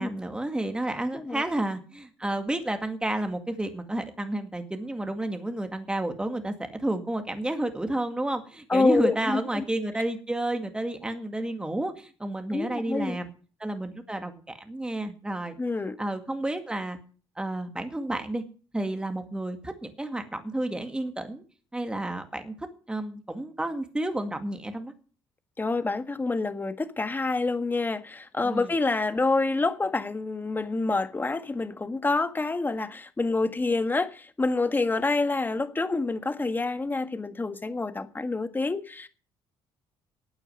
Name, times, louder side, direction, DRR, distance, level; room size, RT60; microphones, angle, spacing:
voice 1, 0.0-13.3 13.6-15.6 16.0-17.0 17.4-18.4 18.7-21.4 21.7-24.9 28.4-28.7, right 1 dB, 10° right, 2.1 m, -31 dB
voice 2, 8.7-9.6 12.5-13.2 15.6-16.0 25.6-39.1, left 3 dB, 20° left, 1.7 m, -27 dB
13.0 x 8.9 x 8.0 m
cardioid pair, 95°, 10 cm